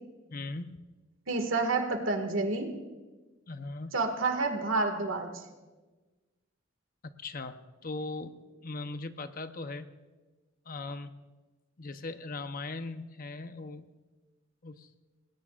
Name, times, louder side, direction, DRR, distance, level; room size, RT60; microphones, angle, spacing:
voice 1, 0.3-0.8 3.5-3.9 7.2-8.4 8.6-9.9 10.7-11.1 11.8-13.9 14.6-14.9, left 3 dB, 45° left, 9 dB, 0.8 m, -39 dB
voice 2, 1.3-2.7 3.9-5.4, right 3 dB, 85° right, 5 dB, 2.0 m, -29 dB
27.0 x 20.0 x 2.5 m, 1.2 s
head